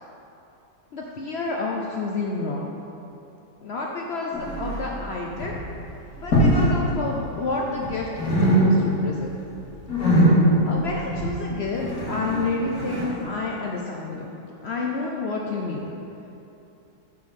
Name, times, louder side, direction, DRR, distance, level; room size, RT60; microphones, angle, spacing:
voice 1, 0.9-2.7 3.6-5.6 6.2-9.3 10.7-14.3 14.6-15.9, left 3 dB, 80° left, -1 dB, 0.5 m, -29 dB
sound 1, 4.3-5.0 5.3-5.7 6.2-6.8 7.0-7.9 8.1-9.1 9.4-13.1, right 1 dB, 60° left, 2.3 m, -21 dB
6.9 x 4.7 x 6.4 m, 2.9 s
omnidirectional pair, 1.8 m